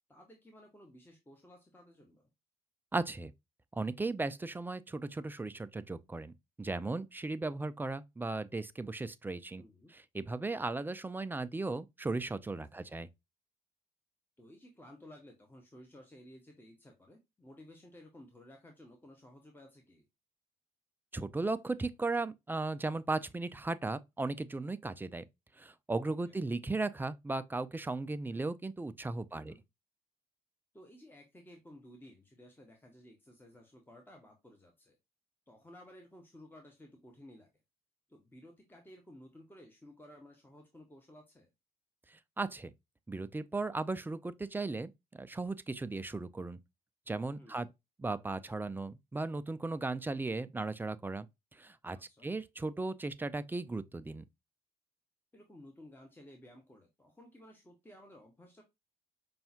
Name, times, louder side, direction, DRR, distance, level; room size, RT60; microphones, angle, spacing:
voice 1, 0.1-2.3 9.6-9.9 12.6-13.0 14.4-20.1 26.1-26.4 29.3-29.6 30.7-35.0 35.5-37.5 38.1-41.5 47.4-47.7 51.9-52.3 55.3-58.6, left 1 dB, 10° left, 0.9 m, -56 dB
voice 2, 2.9-3.3 3.7-9.6 9.9-13.1 21.1-25.2 25.6-29.5 42.1-42.7 43.1-46.6 47.1-47.7 48.0-51.3 51.6-52.0 52.2-54.2, right 3 dB, 10° right, 0.3 m, -36 dB
5.4 x 2.3 x 2.7 m
figure-of-eight pair, 50°, 20 cm